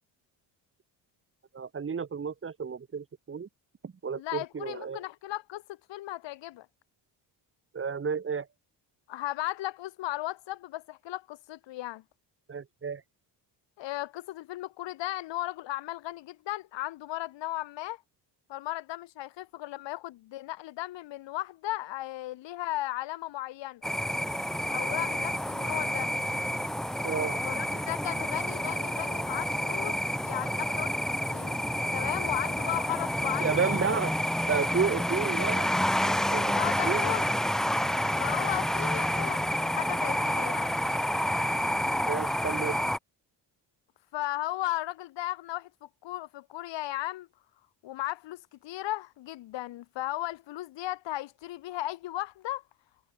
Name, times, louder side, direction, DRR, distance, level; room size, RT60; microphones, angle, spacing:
voice 1, 1.5-3.5 3.8-5.0 7.7-8.5 12.5-13.0 27.0-27.4 33.4-34.1 34.5-35.7 36.0-36.5 36.8-37.1 42.1-42.8, right 6 dB, 30° right, 4.3 m, -31 dB
voice 2, 4.1-6.7 9.1-12.0 13.8-18.0 18.5-23.8 24.7-26.1 27.4-30.0 30.2-30.9 31.3-31.6 31.9-33.8 36.5-37.4 38.2-40.7 44.1-47.3 47.8-52.6, left 15 dB, 80° left, 3.3 m, -36 dB
sound 1, 23.8-43.0, equal, ahead, 0.3 m, -29 dB
cardioid pair, 150°, 43 cm